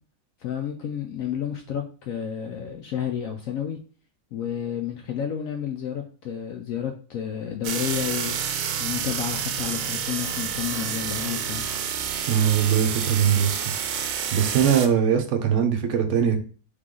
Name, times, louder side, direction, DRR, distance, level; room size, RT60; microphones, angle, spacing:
voice 1, 0.4-3.8 4.3-8.4 8.8-11.6, left 9 dB, 70° left, 5 dB, 0.8 m, -31 dB
sound 1, 7.6-14.9, right 8 dB, 85° right, 1.3 m, -29 dB
voice 2, 12.3-13.6 14.3-16.4, right 8 dB, 55° right, 5 dB, 0.9 m, -21 dB
3.5 x 3.3 x 3.7 m, 0.39 s
omnidirectional pair, 1.9 m